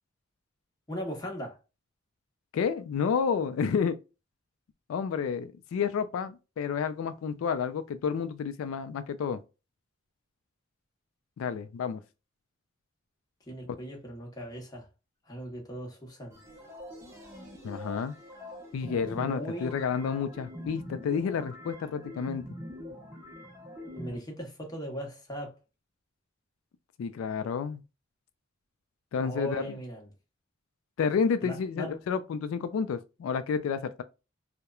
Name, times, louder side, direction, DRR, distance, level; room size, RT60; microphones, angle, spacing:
voice 1, 0.9-1.6 13.5-14.9 15.3-16.4 18.9-19.8 23.9-25.5 29.2-30.1 31.4-32.0, equal, 20° left, 0.8 m, -39 dB
voice 2, 2.5-4.0 4.9-9.4 11.4-12.0 13.7-13.8 17.6-18.1 18.7-22.4 27.0-27.8 29.1-29.8 31.0-34.0, left 6 dB, 85° left, 0.3 m, -30 dB
sound 1, 16.3-24.2, left 1 dB, 15° right, 0.7 m, -44 dB
2.9 x 2.1 x 2.3 m
head